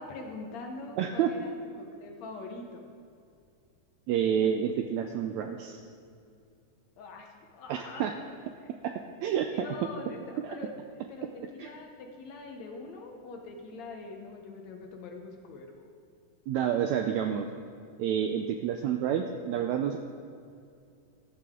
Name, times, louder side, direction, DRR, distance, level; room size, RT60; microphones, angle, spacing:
voice 1, 0.0-2.9 7.0-8.1 8.6-8.7 9.5-15.9, left 3 dB, 65° left, 2 dB, 2.1 m, -43 dB
voice 2, 1.0-1.3 4.1-5.8 7.7-8.1 8.8-8.9 9.2-9.7 10.4-10.5 11.6-11.7 16.5-17.5 18.0-20.0, right 9 dB, 85° right, 5 dB, 1.6 m, -29 dB
14.0 x 12.5 x 3.7 m, 2.5 s
omnidirectional pair, 3.8 m